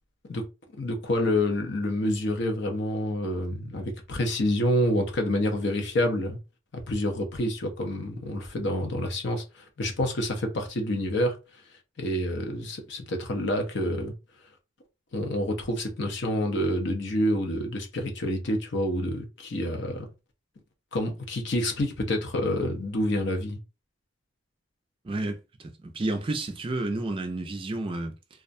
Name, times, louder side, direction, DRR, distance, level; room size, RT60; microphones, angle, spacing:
voice 1, 0.8-6.4 6.7-11.4 12.0-14.1 15.1-20.1 20.9-23.6, left 1 dB, 65° left, 0.6 m, -28 dB
voice 2, 25.0-28.2, right 2 dB, 25° right, 0.3 m, -31 dB
2.3 x 2.1 x 2.6 m
head